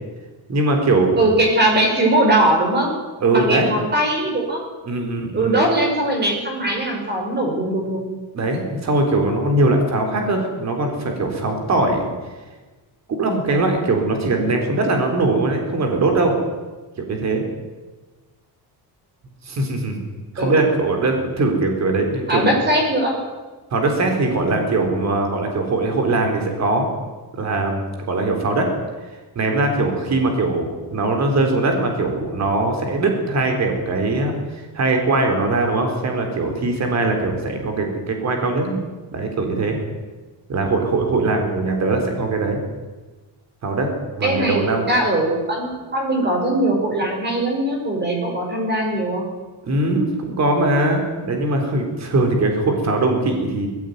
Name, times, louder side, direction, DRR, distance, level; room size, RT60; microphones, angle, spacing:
voice 1, 0.5-1.2 3.2-3.7 4.9-5.6 8.3-12.1 13.1-16.4 17.0-17.4 19.5-20.0 20.3-22.5 23.7-26.9 27.3-28.7 29.4-38.8 39.1-39.8 40.5-42.6 43.6-43.9 44.2-44.9 49.6-53.7, right 2 dB, 40° right, 4 dB, 4.1 m, -21 dB
voice 2, 1.2-2.9 3.3-4.6 5.3-8.1 20.4-20.6 22.3-23.2 24.3-24.7 44.2-49.2, right 1 dB, 25° right, 1 dB, 5.5 m, -20 dB
19.5 x 15.5 x 9.5 m, 1.3 s
cardioid pair, 180°, 41 cm